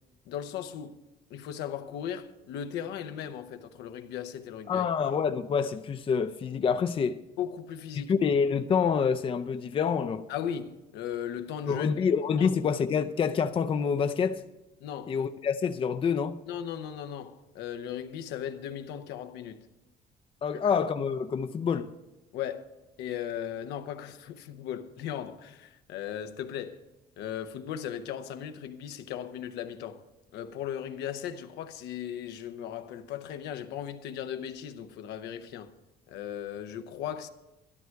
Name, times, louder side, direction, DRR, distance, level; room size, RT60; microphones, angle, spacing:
voice 1, 0.3-1.0 1.3-4.9 7.4-8.1 10.3-11.9 12.4-12.5 14.8-15.2 16.5-19.7 22.3-22.7 23.0-26.8 27.2-30.0 30.3-35.7 36.1-37.3, left 9 dB, 85° left, 0.8 m, -37 dB
voice 2, 4.7-7.2 8.0-10.3 11.7-14.4 15.1-16.4 20.4-21.9, left 6 dB, 30° left, 0.5 m, -27 dB
12.5 x 11.0 x 4.6 m
cardioid pair, 110°, 17 cm